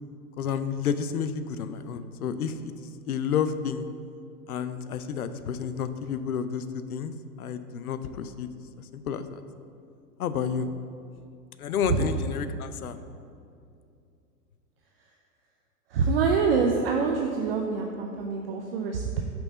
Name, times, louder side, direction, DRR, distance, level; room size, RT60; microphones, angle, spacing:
voice 1, 0.4-3.9 4.5-6.6 6.9-7.1 7.4-8.5 8.8-9.4 10.2-10.7 11.6-13.0, left 7 dB, 65° left, 11 dB, 0.6 m, -30 dB
voice 2, 15.9-19.2, right 5 dB, 40° right, 2 dB, 0.6 m, -25 dB
5.9 x 5.4 x 6.7 m, 2.5 s
figure-of-eight pair, 105°, 48 cm